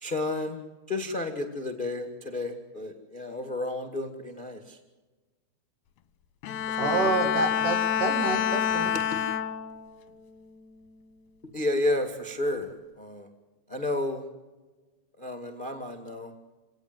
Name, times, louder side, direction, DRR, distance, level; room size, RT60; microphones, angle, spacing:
voice 1, 0.0-0.6 0.9-4.6 6.7-7.1 8.9-9.2 11.5-12.7 13.0-13.3 13.7-14.3 15.2-16.3, left 2 dB, 20° left, 4 dB, 1.4 m, -31 dB
Bowed string instrument, 6.4-10.0 10.5-10.9, left 9 dB, 65° left, 2.2 m, -28 dB
voice 2, 6.8-8.9, right 3 dB, 65° right, 6 dB, 3.9 m, -28 dB
28.5 x 18.5 x 8.0 m, 1.2 s
omnidirectional pair, 4.3 m